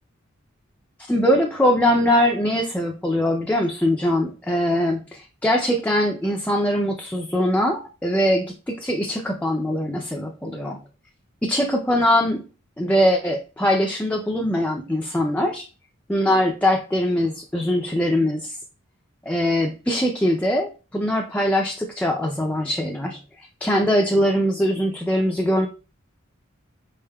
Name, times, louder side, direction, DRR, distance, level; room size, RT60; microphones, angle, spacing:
voice 1, 1.1-10.8 11.4-12.4 12.8-15.7 16.1-18.6 19.3-25.7, equal, 10° left, 1 dB, 0.4 m, -22 dB
5.5 x 3.5 x 2.2 m, 0.33 s
head